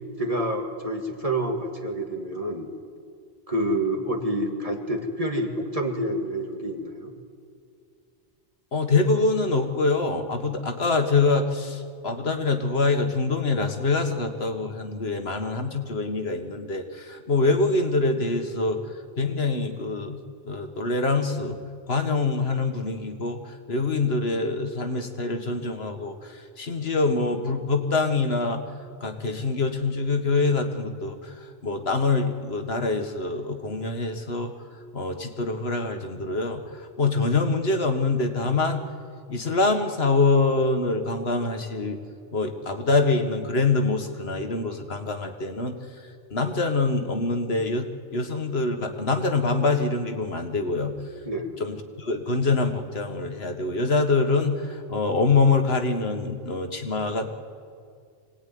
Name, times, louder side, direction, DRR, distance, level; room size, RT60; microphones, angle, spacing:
voice 1, 0.2-2.7 3.5-7.1 51.3-51.5, right 1 dB, 35° right, 2 dB, 2.3 m, -28 dB
voice 2, 8.7-18.8 19.2-20.2 20.4-21.6 21.9-28.7 29.0-34.5 34.9-38.8 39.3-42.0 42.3-45.8 46.3-50.9 51.6-57.3, left 3 dB, 75° left, 5 dB, 1.9 m, -25 dB
24.5 x 18.5 x 9.4 m, 2.2 s
omnidirectional pair, 1.0 m